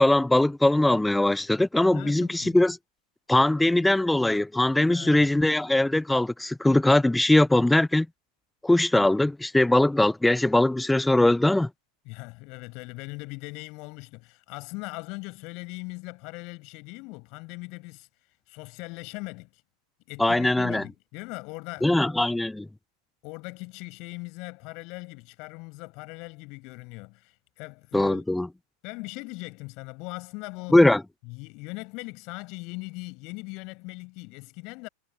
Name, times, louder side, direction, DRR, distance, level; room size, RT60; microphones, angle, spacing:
voice 1, 0.0-2.8 3.3-8.1 8.6-11.7 20.2-20.8 21.8-22.7 27.9-28.5 30.7-31.0, left 1 dB, 5° left, 0.4 m, -21 dB
voice 2, 1.9-2.5 4.9-5.3 12.1-18.1 18.5-19.6 20.1-22.2 23.2-28.2 28.8-30.8 31.3-34.9, left 27 dB, 45° left, 7.1 m, -40 dB
figure-of-eight pair, 90°, 0 cm